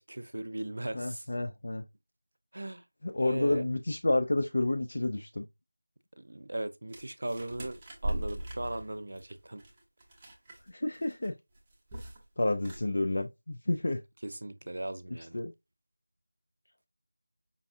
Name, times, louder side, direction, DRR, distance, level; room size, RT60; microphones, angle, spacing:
voice 1, 0.0-1.3 2.5-2.8 3.2-3.7 6.2-9.6 14.2-15.4, right 1 dB, 55° right, 0.4 m, -38 dB
voice 2, 0.9-1.8 3.0-5.5 10.7-11.3 12.4-14.0 15.1-15.5, left 2 dB, 50° left, 0.4 m, -30 dB
sound 1, 6.9-10.7 10.9-11.3 11.6-12.3 12.5-12.8, right 1 dB, 15° right, 0.6 m, -39 dB
5.2 x 2.4 x 2.5 m
figure-of-eight pair, 175°, 0 cm